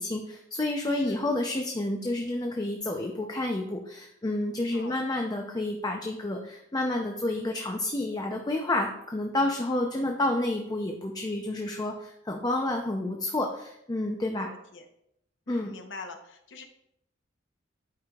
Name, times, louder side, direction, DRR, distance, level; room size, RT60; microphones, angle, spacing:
voice 1, 0.0-14.5 15.5-15.7, left 1 dB, 20° left, 2 dB, 0.6 m, -30 dB
voice 2, 0.9-1.3 4.7-5.0 14.4-14.8 15.5-16.6, left 3 dB, 65° left, 5 dB, 0.9 m, -44 dB
11.5 x 5.0 x 2.4 m, 0.78 s
head